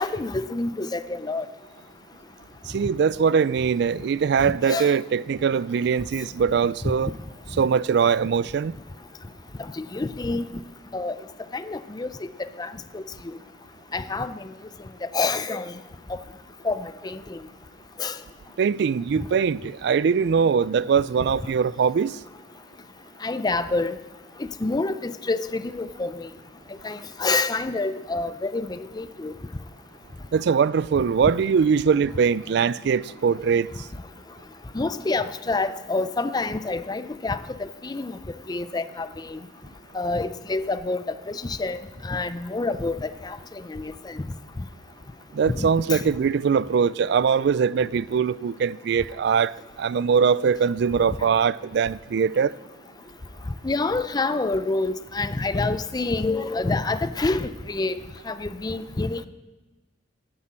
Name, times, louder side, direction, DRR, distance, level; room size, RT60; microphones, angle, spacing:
voice 1, 0.0-1.5 4.4-4.9 9.8-10.5 10.9-11.2 11.5-12.3 12.6-13.0 13.9-14.3 15.0-15.7 16.6-17.4 18.0-18.2 23.2-24.0 24.6-26.3 26.8-29.3 34.7-38.2 38.5-39.4 39.9-43.4 43.7-44.2 45.5-46.0 53.6-58.0 58.3-59.3, left 3 dB, 20° left, 0.5 m, -27 dB
voice 2, 2.7-7.1 7.6-8.7 18.6-22.2 30.3-33.7 45.3-52.5, right 6 dB, 65° right, 0.3 m, -22 dB
9.9 x 9.7 x 7.5 m
head